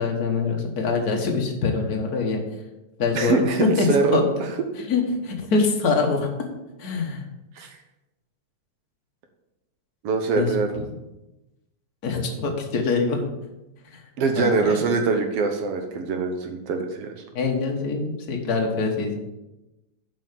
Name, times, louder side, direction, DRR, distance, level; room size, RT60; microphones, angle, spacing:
voice 1, 0.0-2.4 3.0-3.9 4.1-4.3 4.9-6.3 6.8-7.2 10.4-10.5 12.0-13.2 13.9-14.0 14.3-14.8 17.3-19.2, left 4 dB, 45° left, 2 dB, 1.3 m, -24 dB
voice 2, 3.1-4.2 7.6-7.8 10.0-10.7 14.2-17.2, right 4 dB, 65° right, 5 dB, 1.7 m, -23 dB
7.3 x 5.7 x 7.4 m, 0.99 s
omnidirectional pair, 3.4 m